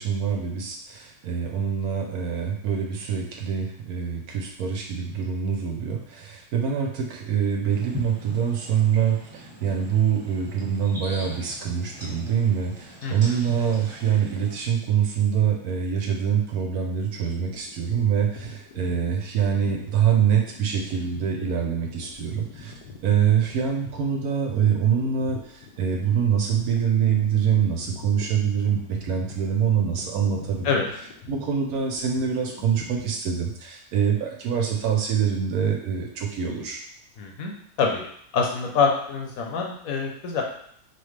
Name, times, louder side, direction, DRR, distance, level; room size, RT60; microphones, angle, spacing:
voice 1, 0.0-22.7 23.0-30.7 31.3-36.8, right 8 dB, 70° right, 1 dB, 1.0 m, -25 dB
sound 1, 7.7-14.6, equal, 15° right, 1.2 m, -41 dB
voice 2, 13.0-13.4 30.6-30.9 37.2-37.5 37.8-38.0 38.3-40.4, left 5 dB, 60° left, 1 dB, 1.1 m, -25 dB
sound 2, 17.0-33.2, left 5 dB, 85° left, 1.3 m, -44 dB
4.3 x 3.0 x 3.2 m, 0.65 s
omnidirectional pair, 1.8 m